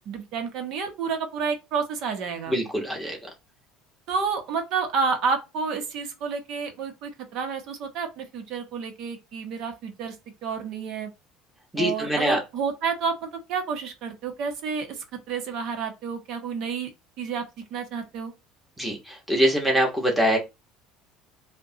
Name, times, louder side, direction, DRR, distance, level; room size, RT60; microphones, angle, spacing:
voice 1, 0.1-2.6 4.1-10.2 10.4-11.1 11.8-16.9 17.2-17.4 17.7-18.3, right 5 dB, 60° right, 0.8 m, -30 dB
voice 2, 2.5-3.2 11.7-12.4 18.8-20.4, equal, ahead, 1.1 m, -23 dB
5.2 x 2.2 x 2.7 m
supercardioid pair, 120°, 0 cm